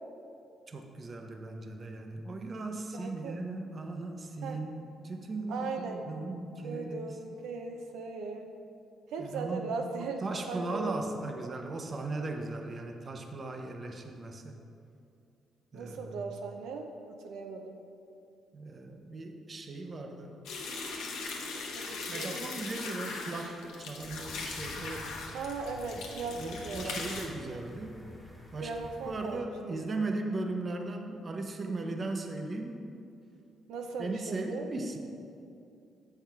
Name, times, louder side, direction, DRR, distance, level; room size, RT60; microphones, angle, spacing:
voice 1, 0.7-7.2 9.2-14.6 15.7-16.1 18.5-20.4 22.1-25.2 26.4-28.0 28.5-28.8 29.0-32.8 34.0-35.0, right 2 dB, 35° right, 4 dB, 0.7 m, -37 dB
voice 2, 2.9-3.4 4.4-4.6 5.5-6.1 6.6-8.5 9.1-10.2 10.5-10.9 11.3-11.7 15.7-17.8 21.7-22.3 25.3-27.0 28.6-29.8 33.7-34.7, right 4 dB, 85° right, 3 dB, 0.5 m, -38 dB
sound 1, 20.5-27.3, left 3 dB, 90° left, 1.0 m, -40 dB
sound 2, 24.0-29.4, left 1 dB, 10° left, 1.4 m, -50 dB
7.2 x 5.6 x 4.6 m, 2.6 s
cardioid pair, 90°, 0 cm